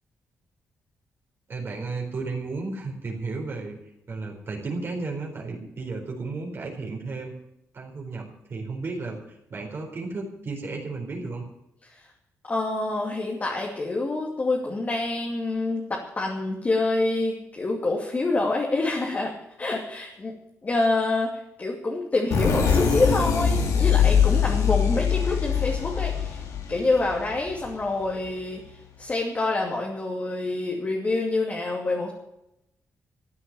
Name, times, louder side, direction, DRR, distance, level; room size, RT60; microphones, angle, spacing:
voice 1, 1.5-3.8 4.1-7.3 7.7-11.4, right 3 dB, 45° right, -1 dB, 4.2 m, -33 dB
voice 2, 12.4-19.3 19.6-20.3 20.6-26.4 26.7-32.1, left 2 dB, 30° left, -1 dB, 2.5 m, -27 dB
sound 1, 22.3-27.8, left 7 dB, 90° left, 2.8 m, -23 dB
14.5 x 8.8 x 8.8 m, 0.85 s
cardioid pair, 105°, 5 cm